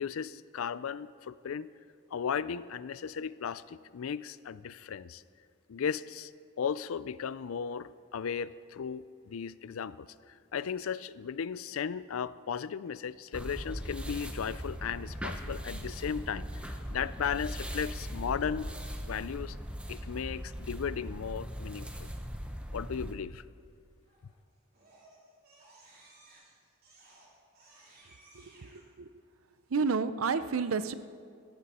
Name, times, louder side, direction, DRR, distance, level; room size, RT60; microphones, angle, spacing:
voice 1, 0.0-1.7 2.1-5.2 5.7-6.3 6.6-10.1 10.5-18.7 19.1-19.6 19.9-22.1 22.7-23.4, left 7 dB, 80° left, 17 dB, 0.4 m, -36 dB
sound 1, 13.3-23.1, equal, 5° right, 0.8 m, -39 dB
Crying sobbing, 18.4-19.3 24.0-24.3 24.7-28.8, right 2 dB, 45° right, 3.7 m, -59 dB
voice 2, 28.4-29.1 29.7-30.9, right 5 dB, 80° right, 13 dB, 0.6 m, -31 dB
16.5 x 14.5 x 4.3 m, 2.2 s
head